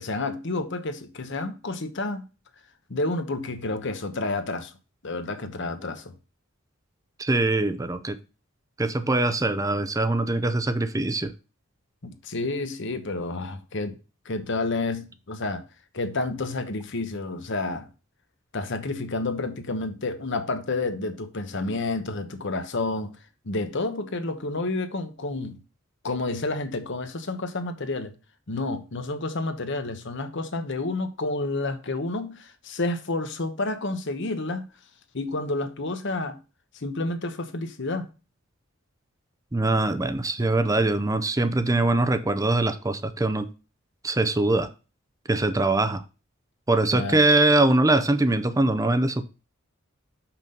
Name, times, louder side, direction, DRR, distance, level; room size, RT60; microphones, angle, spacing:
voice 1, 0.0-2.2 2.9-4.7 5.0-6.1 12.0-14.0 14.2-15.6 15.9-17.9 18.5-23.1 23.4-25.6 26.0-28.1 28.5-34.7 35.1-36.4 36.7-38.1 46.9-47.2, left 2 dB, 60° left, 1.0 m, -30 dB
voice 2, 7.2-8.2 8.8-11.3 39.5-43.5 44.0-44.7 45.3-46.0 46.7-49.2, right 2 dB, 15° right, 0.6 m, -22 dB
5.9 x 5.9 x 5.3 m
head